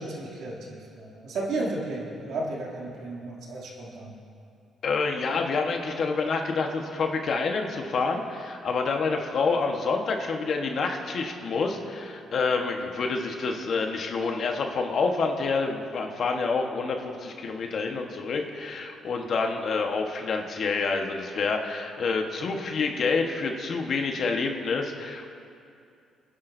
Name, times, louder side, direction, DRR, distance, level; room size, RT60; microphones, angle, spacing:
voice 1, 0.0-4.1, right 2 dB, 75° right, -4 dB, 2.7 m, -33 dB
voice 2, 4.8-25.3, left 4 dB, 60° left, 3 dB, 1.3 m, -28 dB
24.5 x 10.5 x 2.7 m, 2.5 s
cardioid pair, 90°, 0 cm